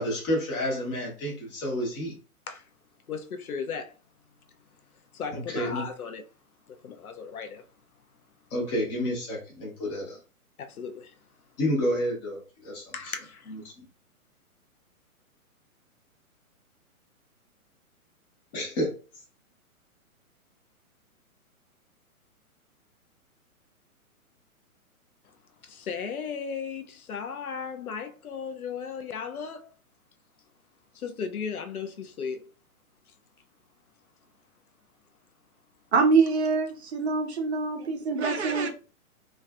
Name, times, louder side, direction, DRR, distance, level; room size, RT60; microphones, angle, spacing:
voice 1, 0.0-2.1 5.3-5.9 8.5-10.2 11.6-12.9 13.5-13.8 18.5-18.9, equal, 20° left, 0.7 m, -30 dB
voice 2, 3.1-3.9 5.1-6.2 6.7-7.7 10.6-11.2 12.9-13.6 25.6-29.7 30.9-32.5 33.1-33.2, left 6 dB, 75° left, 0.6 m, -36 dB
voice 3, 35.9-38.7, right 4 dB, 50° right, 0.6 m, -24 dB
2.4 x 2.3 x 2.2 m
figure-of-eight pair, 120°, 44 cm